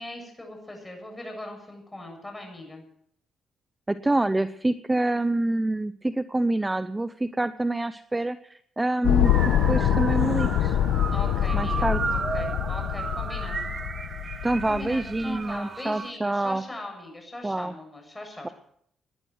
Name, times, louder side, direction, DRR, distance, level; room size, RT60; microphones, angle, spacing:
voice 1, 0.0-2.8 11.1-13.6 14.6-18.5, left 1 dB, 15° left, 2 dB, 7.6 m, -40 dB
voice 2, 3.9-9.3 9.7-10.8 11.5-12.0 14.4-16.6 17.4-17.7, right 2 dB, 15° right, 13 dB, 0.6 m, -26 dB
sound 1, 9.0-15.3, left 11 dB, 90° left, 0.9 m, -25 dB
sound 2, 9.2-16.1, right 5 dB, 40° right, 1.1 m, -34 dB
19.0 x 10.5 x 6.3 m, 0.67 s
cardioid pair, 90°, 0 cm